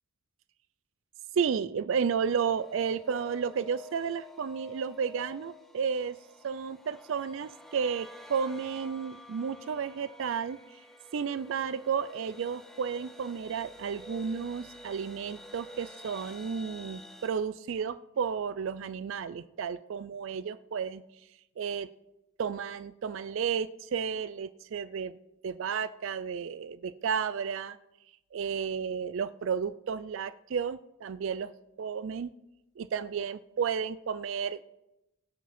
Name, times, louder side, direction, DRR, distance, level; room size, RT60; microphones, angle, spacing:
voice 1, 1.3-6.2 6.4-10.6 11.1-21.0 21.6-21.9 22.4-25.1 25.4-27.8 28.3-31.5 31.8-32.3 32.8-34.6, right 6 dB, 65° right, 15 dB, 0.4 m, -32 dB
sound 1, 2.4-17.3, left 2 dB, ahead, 0.9 m, -50 dB
17.5 x 7.4 x 4.2 m, 0.91 s
head